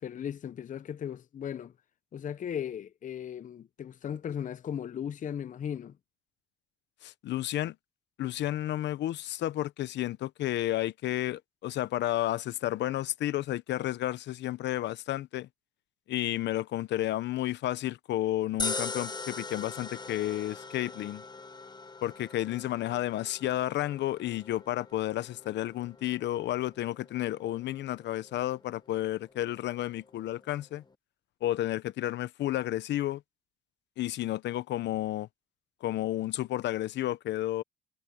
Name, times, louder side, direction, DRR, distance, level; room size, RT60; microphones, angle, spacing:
voice 1, 0.0-1.7 2.1-6.0, left 8 dB, 40° left, 0.8 m, -37 dB
voice 2, 7.0-7.8 8.2-15.5 16.1-21.2 22.0-30.8 31.4-33.2 34.0-35.3 35.8-37.6, left 14 dB, 65° left, 1.0 m, -31 dB
sound 1, 18.6-30.9, left 3 dB, 20° left, 1.3 m, -42 dB
supercardioid pair, 80°, 20 cm